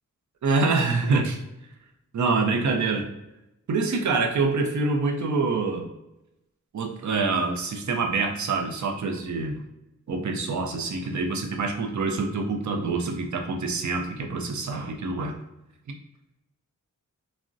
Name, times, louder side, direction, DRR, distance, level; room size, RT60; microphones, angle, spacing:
voice 1, 0.4-1.4 2.1-3.1 3.7-5.9 6.7-9.6 10.1-15.4, right 3 dB, 65° right, 4 dB, 0.5 m, -26 dB
3.5 x 2.1 x 2.5 m, 0.90 s
wide cardioid pair, 95°, 32 cm